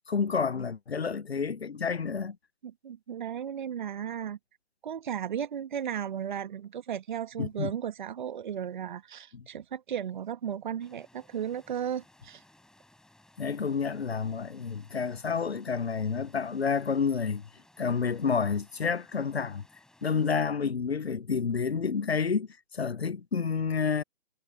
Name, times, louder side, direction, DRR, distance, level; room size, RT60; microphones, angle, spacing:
voice 1, 0.1-2.4 7.4-7.7 9.3-9.4 13.4-17.4 17.8-19.6 20.0-22.5 22.7-24.0, left 5 dB, 85° left, 0.7 m, -29 dB
voice 2, 2.6-4.4 4.8-12.4, right 9 dB, 50° right, 1.3 m, -35 dB
sound 1, 10.8-20.3, left 1 dB, ahead, 4.2 m, -61 dB
figure-of-eight pair, 130°, 31 cm